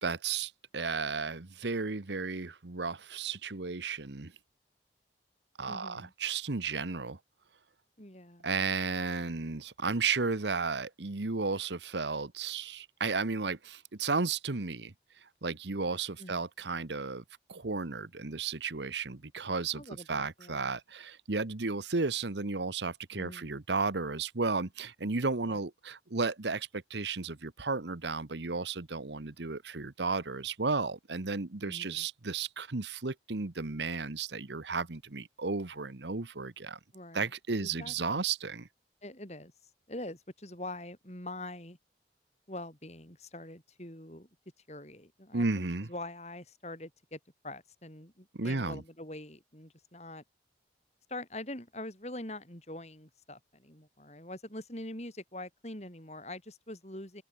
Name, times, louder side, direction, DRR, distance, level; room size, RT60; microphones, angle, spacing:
voice 1, 0.0-4.3 5.6-7.2 8.4-14.9 15.4-17.2 17.5-36.8 37.1-38.7 45.3-45.9 48.3-48.8, right 4 dB, 75° right, 1.2 m, -33 dB
voice 2, 5.7-6.1 8.0-8.5 16.2-16.5 19.7-20.7 23.1-23.5 25.4-25.6 31.6-32.1 36.9-37.3 37.6-38.2 39.0-39.5 39.9-41.8 42.5-44.3 44.7-47.2 47.4-50.2 51.1-57.2, left 1 dB, 35° left, 6.5 m, -44 dB
head